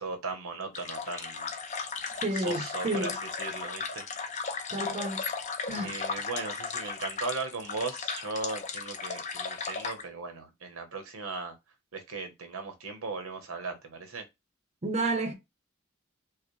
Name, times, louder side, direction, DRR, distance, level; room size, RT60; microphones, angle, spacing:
voice 1, 0.0-1.5 2.3-3.1 3.4-4.0 5.8-11.5 11.9-14.2, right 3 dB, 75° right, 1.0 m, -37 dB
sound 1, 0.7-10.0, left 5 dB, 35° left, 0.6 m, -36 dB
voice 2, 2.2-3.2 4.7-5.2 5.7-6.0 14.8-15.3, right 2 dB, 30° right, 0.7 m, -31 dB
4.7 x 2.1 x 3.1 m
head